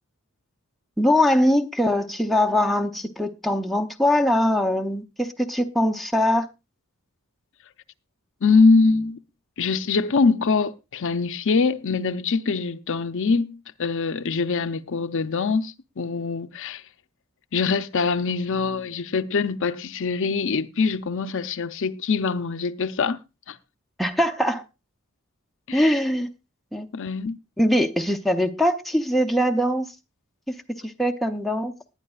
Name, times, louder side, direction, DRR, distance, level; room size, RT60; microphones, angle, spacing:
voice 1, 1.0-6.5 24.0-24.6 25.7-26.3 26.7-26.9 27.6-30.0 30.5-31.7, left 1 dB, ahead, 0.7 m, -22 dB
voice 2, 8.4-9.2 9.6-16.8 17.5-23.2 23.5-23.6 25.7-25.8 26.9-27.4, left 4 dB, 60° left, 0.6 m, -23 dB
19.5 x 10.5 x 2.4 m
head